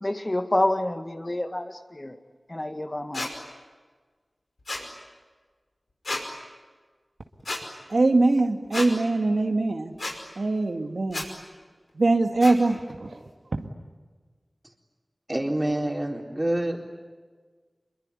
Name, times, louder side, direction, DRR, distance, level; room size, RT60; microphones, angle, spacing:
voice 1, 0.0-2.2 2.5-3.3, left 1 dB, 30° left, 6 dB, 1.8 m, -28 dB
sound 1, 3.1-3.3 4.7-4.9 6.0-6.2 7.4-7.6 8.7-8.9 10.0-10.2 11.1-11.3 12.4-12.5, left 2 dB, 70° left, 5.3 m, -31 dB
voice 2, 7.9-9.9 10.4-11.2 12.0-13.2 13.5-13.7, right 2 dB, 80° right, 4 dB, 2.0 m, -22 dB
voice 3, 15.3-16.8, right 1 dB, 25° right, 2 dB, 4.0 m, -27 dB
26.0 x 23.0 x 9.9 m, 1.4 s
wide cardioid pair, 65°, 0 cm